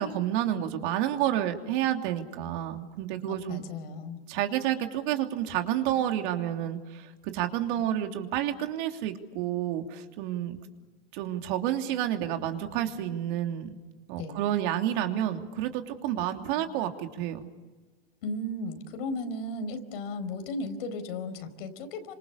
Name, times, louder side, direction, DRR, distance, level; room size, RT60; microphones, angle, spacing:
voice 1, 0.0-3.6 4.3-10.6 11.1-13.8 14.1-17.4, right 11 dB, 55° right, 5 dB, 3.1 m, -30 dB
voice 2, 3.3-4.2 14.2-14.4 18.2-22.1, left 2 dB, 70° left, 8 dB, 4.8 m, -35 dB
29.0 x 26.0 x 7.0 m, 1.3 s
supercardioid pair, 130°, 30 cm